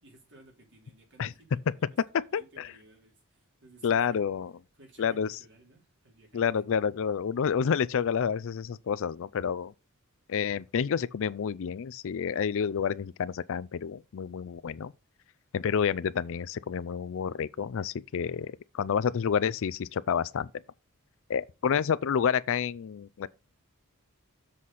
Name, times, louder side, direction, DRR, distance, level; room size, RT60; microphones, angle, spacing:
voice 1, 0.0-4.2 4.7-6.6, right 2 dB, 55° right, 3.0 m, -57 dB
voice 2, 2.3-2.7 3.8-4.5 5.0-5.3 6.3-9.7 10.3-14.9 15.5-20.5 21.3-23.3, left 7 dB, 60° left, 0.4 m, -29 dB
7.4 x 4.2 x 6.3 m
head